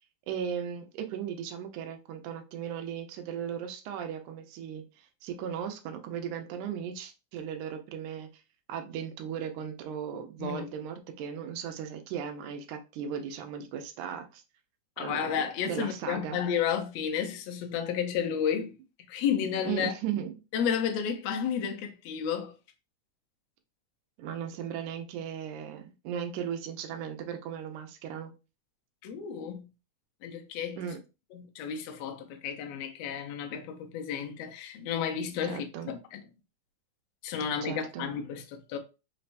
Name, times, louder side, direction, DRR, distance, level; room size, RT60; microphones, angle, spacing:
voice 1, 0.3-8.3 8.7-14.4 15.0-16.4 19.7-20.3 24.2-28.3 30.8-31.0 35.4-35.9 37.6-38.1, right 8 dB, 90° right, 2.2 m, -37 dB
voice 2, 15.0-18.8 19.1-19.9 20.5-22.5 29.0-29.7 30.2-30.9 31.3-36.2 37.2-38.8, left 8 dB, 75° left, 1.7 m, -32 dB
5.2 x 3.3 x 2.5 m
omnidirectional pair, 3.4 m